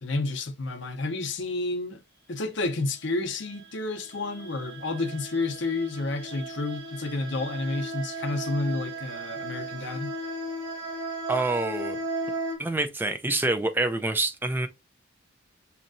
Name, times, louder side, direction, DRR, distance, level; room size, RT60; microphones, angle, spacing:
voice 1, 0.0-2.0 2.3-10.1, left 2 dB, 60° left, 0.7 m, -30 dB
sound 1, 3.5-12.6, right 1 dB, 65° right, 1.1 m, -36 dB
voice 2, 11.3-12.0 12.6-14.7, right 2 dB, 10° right, 0.3 m, -26 dB
6.2 x 2.8 x 2.6 m
head